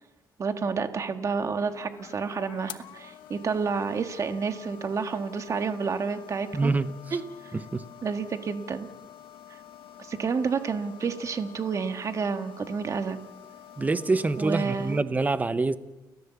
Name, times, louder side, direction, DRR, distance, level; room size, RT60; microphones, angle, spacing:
voice 1, 0.4-6.7 7.1-7.6 8.0-8.9 9.5-9.6 10.0-13.2 14.4-15.0, right 5 dB, 40° right, 1.7 m, -30 dB
sound 1, 1.5-15.0, left 10 dB, 85° left, 1.2 m, -48 dB
voice 2, 6.5-6.9 7.5-7.8 13.8-15.8, right 3 dB, 20° right, 1.0 m, -25 dB
29.5 x 13.5 x 7.2 m
cardioid pair, 110°, 8 cm